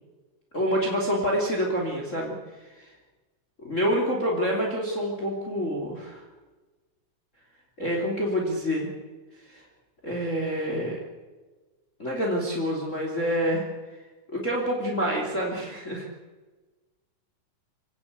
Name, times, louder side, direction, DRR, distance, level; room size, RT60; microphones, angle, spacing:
voice 1, 0.5-2.3 2.7-2.9 3.6-6.2 7.8-8.9 9.5-9.6 10.0-11.0 12.0-13.7 14.3-16.1, equal, 25° left, 0 dB, 3.1 m, -27 dB
25.5 x 17.5 x 8.2 m, 1.3 s
omnidirectional pair, 3.6 m